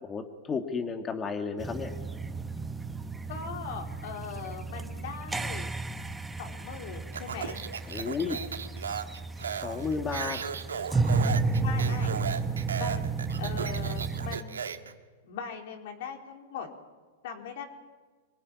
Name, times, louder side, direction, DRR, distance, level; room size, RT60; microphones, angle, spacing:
voice 1, 0.0-1.9 7.9-8.4 9.6-10.4, left 5 dB, 20° left, 5 dB, 2.3 m, -32 dB
sound 1, 1.6-14.4, right 3 dB, 10° right, 1.3 m, -32 dB
voice 2, 3.3-5.7 6.4-7.6 11.6-12.1 12.7-13.0 13.4-14.6 15.2-16.7 17.2-17.6, left 7 dB, 60° left, 3 dB, 4.3 m, -40 dB
Speech, 7.1-14.9, right 7 dB, 85° right, 1.8 m, -35 dB
25.5 x 21.5 x 9.9 m, 1.4 s
hypercardioid pair, 110°, 0 cm